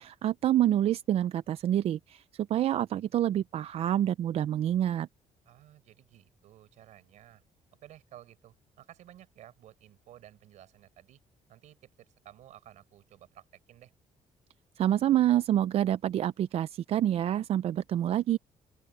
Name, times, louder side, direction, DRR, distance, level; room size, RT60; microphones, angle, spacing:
voice 1, 0.0-5.1 14.8-18.4, right 11 dB, 55° right, 0.5 m, -27 dB
voice 2, 5.4-7.4 7.8-11.2 11.5-13.9, right 12 dB, 75° right, 5.0 m, -54 dB
open air
cardioid pair, 135°, 12 cm